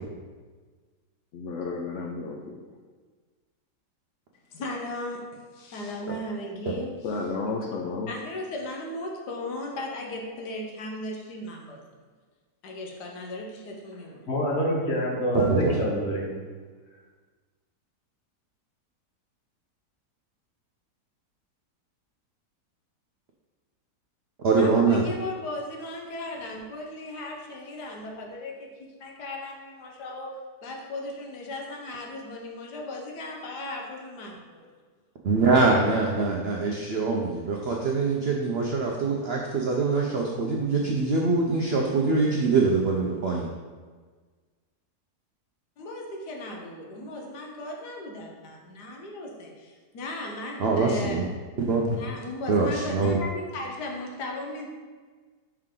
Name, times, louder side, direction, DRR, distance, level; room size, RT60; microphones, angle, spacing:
voice 1, 1.4-2.6 7.0-8.1, left 4 dB, 65° left, 0 dB, 0.8 m, -32 dB
voice 2, 4.5-7.5 8.1-11.8 12.6-14.3 24.6-28.7 29.0-30.4 30.6-34.7 45.8-51.2 51.9-54.7, left 1 dB, 85° left, 1 dB, 1.5 m, -36 dB
voice 3, 14.3-16.4, right 1 dB, 45° left, -2 dB, 1.2 m, -26 dB
voice 4, 15.3-15.8 24.4-25.0 35.2-43.5 50.6-51.2 51.7-52.0 52.5-53.2, right 4 dB, 70° right, -1 dB, 0.6 m, -24 dB
5.6 x 4.7 x 3.7 m, 1.4 s
omnidirectional pair, 1.7 m